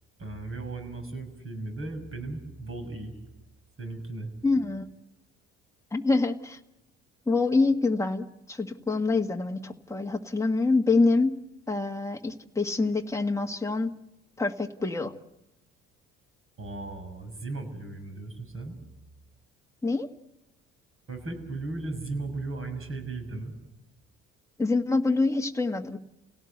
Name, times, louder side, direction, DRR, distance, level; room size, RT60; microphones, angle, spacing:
voice 1, 0.2-3.1 3.8-4.3 16.6-18.8 21.1-23.5, right 2 dB, 40° right, 6 dB, 6.3 m, -36 dB
voice 2, 4.4-4.9 5.9-6.6 7.3-11.4 11.7-13.9 14.4-15.1 19.8-20.1 24.6-26.0, left 3 dB, 10° left, 4 dB, 1.6 m, -26 dB
29.0 x 17.5 x 8.1 m, 0.93 s
hypercardioid pair, 55°, 34 cm